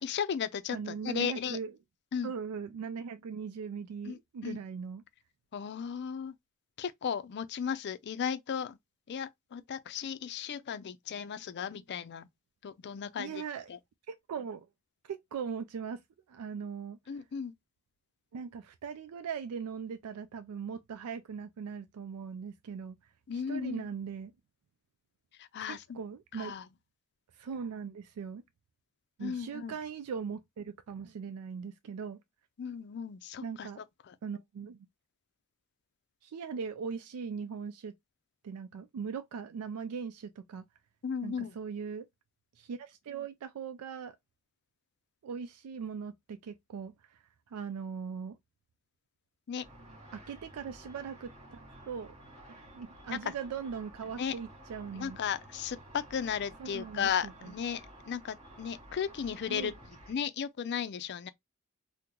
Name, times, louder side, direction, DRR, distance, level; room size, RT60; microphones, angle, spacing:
voice 1, 0.0-1.6 2.1-2.3 4.1-4.6 5.5-6.3 6.8-8.8 9.1-12.3 12.6-13.4 13.7-13.8 17.1-17.5 23.3-23.9 25.5-26.0 26.4-26.6 29.2-29.7 32.6-33.7 34.1-34.2 41.0-41.5 49.5-49.6 53.1-53.2 54.1-54.3 54.9-59.7 60.1-61.3, left 7 dB, 50° left, 0.4 m, -35 dB
voice 2, 0.7-1.7 2.2-5.0 13.2-13.7 14.1-14.7 15.0-16.0 16.3-17.2 18.3-23.0 23.3-24.3 25.6-26.5 27.3-28.4 29.2-32.2 33.4-33.8 34.2-34.9 36.2-37.9 38.4-40.6 41.2-42.1 42.6-44.2 45.2-48.4 50.1-52.1 52.7-55.2 56.6-57.5 59.5-59.7, right 6 dB, 85° right, 0.4 m, -40 dB
Car / Traffic noise roadway noise / Engine, 49.6-60.1, right 1 dB, 30° right, 1.7 m, -52 dB
3.7 x 2.1 x 2.9 m
head